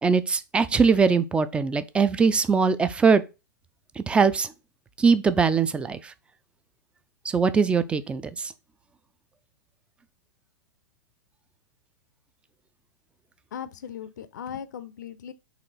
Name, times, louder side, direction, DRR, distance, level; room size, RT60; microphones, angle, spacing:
voice 1, 0.0-3.2 4.0-4.5 5.0-6.1 7.3-8.5, right 5 dB, 10° right, 0.3 m, -21 dB
voice 2, 13.5-15.3, left 8 dB, 65° left, 0.5 m, -38 dB
4.2 x 2.9 x 3.9 m
figure-of-eight pair, 105°, 10 cm